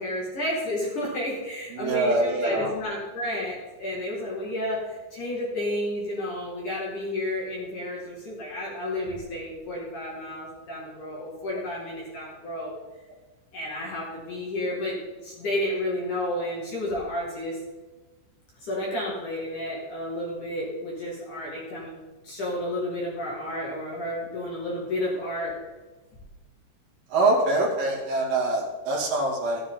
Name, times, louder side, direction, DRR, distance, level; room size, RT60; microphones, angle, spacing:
voice 1, 0.0-12.8 13.5-17.6 18.6-22.0 22.2-25.5, left 1 dB, 45° left, -5 dB, 3.2 m, -31 dB
voice 2, 1.7-2.7 27.1-29.6, right 2 dB, 50° right, -3 dB, 3.9 m, -24 dB
14.0 x 10.5 x 3.9 m, 1.2 s
omnidirectional pair, 5.8 m